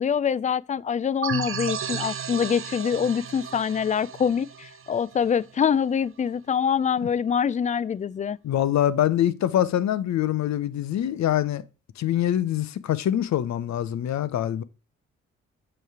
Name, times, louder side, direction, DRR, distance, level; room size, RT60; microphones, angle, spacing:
voice 1, 0.0-8.4, left 7 dB, 25° left, 0.3 m, -25 dB
sound 1, 1.2-5.7, right 7 dB, 40° right, 0.7 m, -34 dB
voice 2, 8.4-11.6 12.0-14.6, left 11 dB, 50° left, 0.7 m, -24 dB
7.7 x 3.3 x 4.7 m
hypercardioid pair, 45°, 35 cm